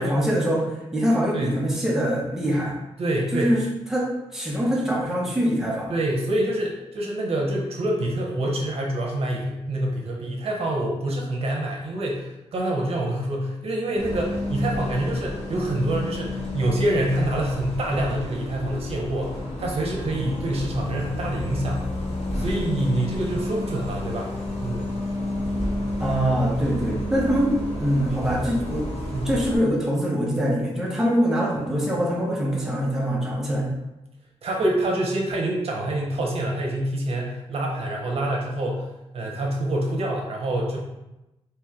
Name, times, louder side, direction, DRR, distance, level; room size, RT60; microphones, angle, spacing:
voice 1, 0.0-2.8 3.3-3.6 3.9-5.9 26.0-28.9 29.2-33.7, equal, 5° right, -5 dB, 0.9 m, -24 dB
voice 2, 3.0-3.6 5.9-21.9 22.3-24.9 29.1-29.3 34.4-38.9 39.1-40.8, right 1 dB, 65° right, -1 dB, 0.8 m, -26 dB
Bus, 14.0-29.6, left 1 dB, 75° left, 0.9 m, -31 dB
3.1 x 3.0 x 3.6 m, 0.95 s
wide cardioid pair, 115°, 11 cm